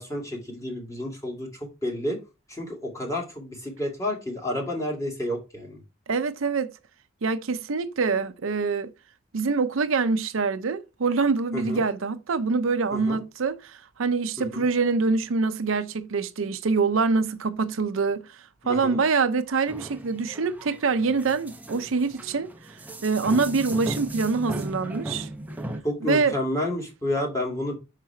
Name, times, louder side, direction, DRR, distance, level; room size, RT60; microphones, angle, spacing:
voice 1, 0.0-2.2 2.5-5.8 11.5-11.8 12.9-13.2 14.5-14.7 18.6-19.0 25.8-27.8, left 1 dB, 15° left, 2.2 m, -30 dB
voice 2, 6.1-6.7 7.2-8.9 9.3-18.4 18.7-22.5 23.0-25.3 26.0-26.4, right 4 dB, 75° right, 0.6 m, -25 dB
sound 1, 19.7-25.8, right 1 dB, 10° right, 0.7 m, -36 dB
5.9 x 4.7 x 4.3 m
head